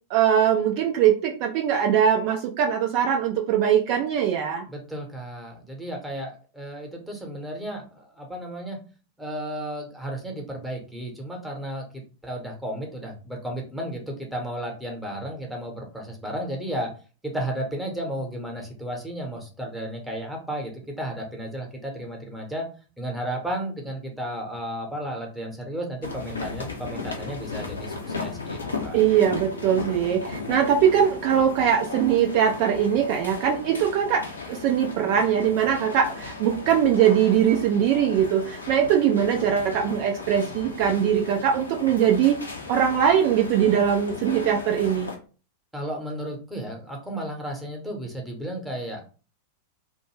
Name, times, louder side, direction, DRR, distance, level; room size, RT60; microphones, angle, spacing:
voice 1, 0.1-4.6 28.9-42.4 42.7-45.1, right 9 dB, 45° right, 2 dB, 0.4 m, -21 dB
voice 2, 4.7-8.8 9.2-16.9 17.2-22.6 23.0-29.0 45.7-49.0, right 1 dB, 5° right, 0 dB, 0.9 m, -33 dB
sound 1, 26.0-45.2, left 4 dB, 80° left, 0.6 m, -36 dB
2.5 x 2.2 x 3.1 m, 0.36 s
figure-of-eight pair, 90°, 0 cm